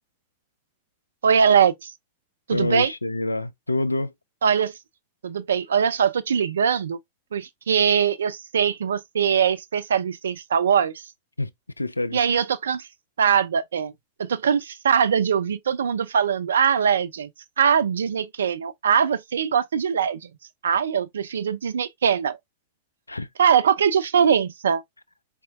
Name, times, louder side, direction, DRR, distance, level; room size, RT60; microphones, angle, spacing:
voice 1, 1.2-1.7 2.5-2.9 4.4-4.7 5.2-7.0 7.3-11.0 12.1-12.9 13.2-13.9 14.2-17.3 17.6-20.3 20.6-22.4 23.4-24.8, right 7 dB, 65° right, 0.4 m, -21 dB
voice 2, 2.5-4.1 11.4-11.5 11.8-12.2 23.1-23.3, left 2 dB, 85° left, 0.3 m, -26 dB
4.3 x 3.4 x 2.3 m
figure-of-eight pair, 90°, 0 cm